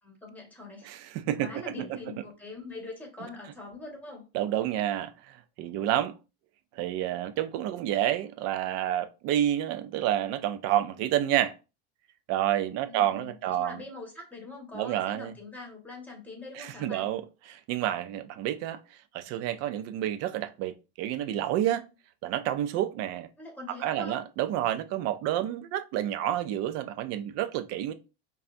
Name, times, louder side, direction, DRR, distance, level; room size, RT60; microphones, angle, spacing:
voice 1, 0.0-0.9 1.4-4.2 12.8-17.1 23.4-24.2, left 3 dB, 5° left, 1.3 m, -43 dB
voice 2, 0.8-1.5 4.3-6.1 6.7-11.5 12.3-13.8 14.7-15.3 16.6-17.2 17.5-18.8 19.1-21.8 22.2-23.3 23.8-27.9, right 12 dB, 50° right, 0.5 m, -29 dB
5.3 x 2.4 x 2.6 m
supercardioid pair, 140°, 33 cm